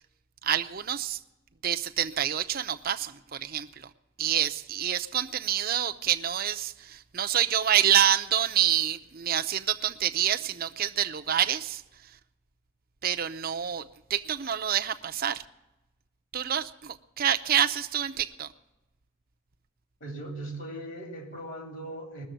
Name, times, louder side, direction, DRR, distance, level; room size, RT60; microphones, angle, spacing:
voice 1, 0.4-1.2 1.6-3.9 4.2-12.1 13.0-15.4 16.3-18.5, right 10 dB, 45° right, 7 dB, 0.6 m, -27 dB
voice 2, 20.0-22.3, right 1 dB, 60° left, 3 dB, 3.5 m, -39 dB
20.5 x 7.0 x 9.1 m, 0.98 s
head